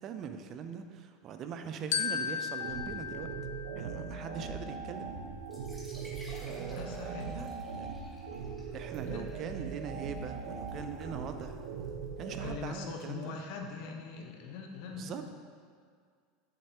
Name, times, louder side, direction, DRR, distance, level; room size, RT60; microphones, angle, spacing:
voice 1, 0.0-3.3 3.8-5.1 6.4-7.5 7.8-8.0 8.7-11.6 12.2-13.4 14.9-15.3, right 7 dB, 40° right, 7 dB, 0.5 m, -42 dB
Glockenspiel, 1.9-4.4, left 7 dB, 90° left, 0.5 m, -36 dB
sound 1, 2.6-12.6, right 5 dB, 70° right, 0.9 m, -40 dB
sound 2, 5.4-13.0, equal, ahead, 1.6 m, -55 dB
voice 2, 6.7-7.3 9.0-9.2 12.3-15.3, left 5 dB, 65° left, 2 dB, 1.0 m, -42 dB
7.9 x 6.6 x 3.0 m, 2.1 s
supercardioid pair, 130°, 0 cm